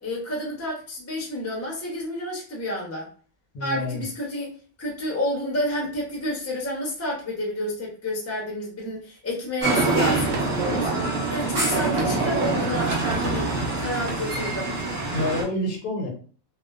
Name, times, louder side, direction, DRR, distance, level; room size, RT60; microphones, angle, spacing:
voice 1, 0.0-3.1 3.6-10.9 11.3-14.7, left 1 dB, 15° left, -2 dB, 0.5 m, -30 dB
voice 2, 3.5-4.0 15.1-16.1, left 1 dB, 85° left, 3 dB, 1.2 m, -28 dB
sound 1, 9.6-15.4, right 3 dB, 25° right, 0.9 m, -25 dB
sound 2, 10.3-10.7 11.2-12.6 13.1-13.8 14.1-14.3, right 4 dB, 65° right, 0.6 m, -38 dB
2.4 x 2.2 x 2.3 m, 0.41 s
omnidirectional pair, 1.5 m